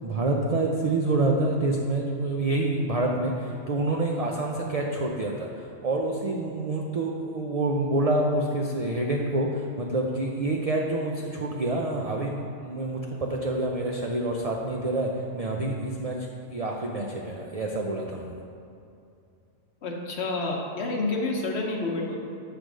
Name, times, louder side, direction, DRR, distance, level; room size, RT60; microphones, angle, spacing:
voice 1, 0.0-5.5 5.8-18.4, right 2 dB, 60° right, 0 dB, 0.3 m, -27 dB
voice 2, 19.8-22.2, left 2 dB, 60° left, 0 dB, 1.1 m, -29 dB
7.7 x 3.4 x 6.1 m, 2.5 s
omnidirectional pair, 1.3 m